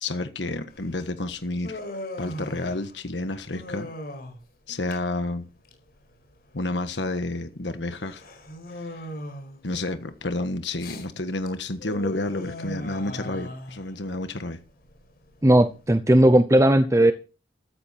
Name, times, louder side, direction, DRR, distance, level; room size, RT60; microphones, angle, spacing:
voice 1, 0.0-1.8 2.2-3.9 4.7-5.4 6.5-8.2 8.7-9.0 9.6-14.6, left 2 dB, 90° left, 1.5 m, -30 dB
Human voice, 0.7-15.9, left 1 dB, 55° left, 4.7 m, -40 dB
voice 2, 15.4-17.1, right 1 dB, 15° right, 0.8 m, -17 dB
14.0 x 14.0 x 4.4 m
head